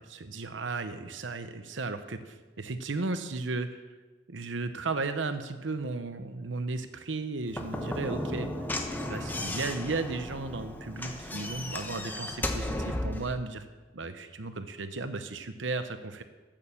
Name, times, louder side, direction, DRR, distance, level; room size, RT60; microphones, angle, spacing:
voice 1, 0.0-3.8 4.3-8.5 9.1-13.7 13.9-16.2, right 3 dB, 90° right, 9 dB, 0.9 m, -35 dB
Slam / Knock, 7.5-13.3, left 1 dB, 10° left, 1.0 m, -34 dB
13.5 x 8.8 x 7.1 m, 1.3 s
head